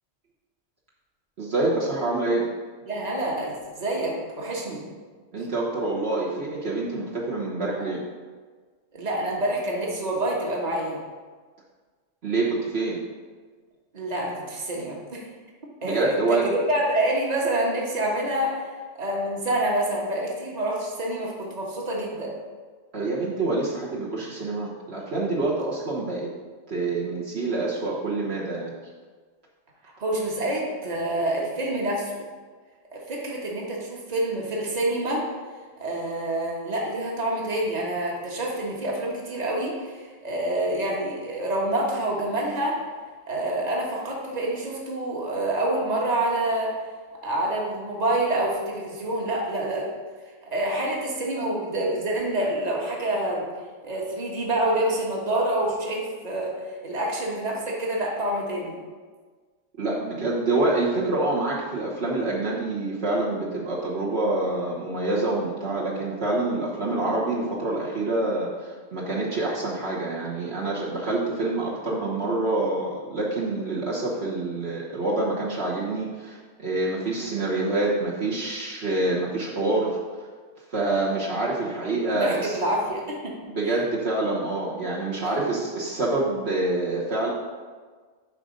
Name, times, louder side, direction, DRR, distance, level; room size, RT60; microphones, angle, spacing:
voice 1, 1.4-2.5 5.3-8.0 12.2-13.0 15.8-16.5 22.9-26.3 26.7-28.7 59.8-80.0 80.7-82.6 83.5-87.3, right 2 dB, 55° right, -5 dB, 1.4 m, -26 dB
voice 2, 2.9-4.8 8.9-11.0 13.9-15.2 15.8-18.7 19.0-22.3 30.0-32.2 32.9-35.3 35.8-42.8 43.3-46.8 47.2-49.9 50.5-53.4 53.8-58.8 82.1-83.4 83.7-83.8 85.2-85.4, right 1 dB, 35° right, -3 dB, 1.4 m, -27 dB
10.5 x 3.8 x 5.2 m, 1.5 s
omnidirectional pair, 1.3 m